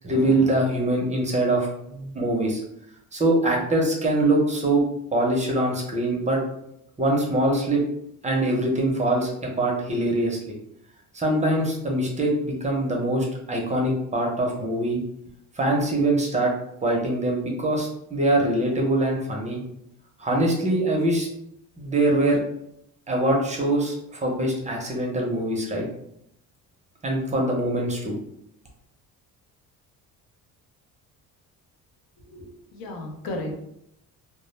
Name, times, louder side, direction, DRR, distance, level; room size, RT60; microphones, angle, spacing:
voice 1, 0.0-2.6 3.1-4.8 5.1-6.4 7.0-7.8 8.2-10.5 11.1-15.0 15.6-16.5 16.8-19.6 20.2-21.3 21.8-22.4 23.1-25.9 27.0-28.2, right 1 dB, 20° right, 0 dB, 0.5 m, -23 dB
voice 2, 32.2-33.6, left 1 dB, 75° left, 2 dB, 0.7 m, -34 dB
2.2 x 2.0 x 3.0 m, 0.75 s
cardioid pair, 125°, 35 cm